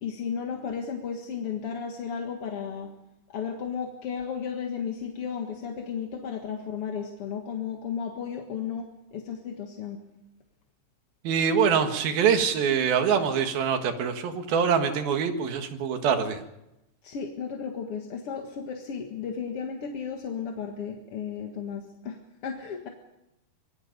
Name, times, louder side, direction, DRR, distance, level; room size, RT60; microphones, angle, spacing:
voice 1, 0.0-2.9 3.3-8.9 9.1-10.0 17.0-22.2 22.4-22.9, left 7 dB, 50° left, 2 dB, 2.1 m, -34 dB
voice 2, 11.2-16.4, right 7 dB, 85° right, 6 dB, 3.6 m, -24 dB
26.0 x 21.5 x 5.3 m, 0.89 s
omnidirectional pair, 4.1 m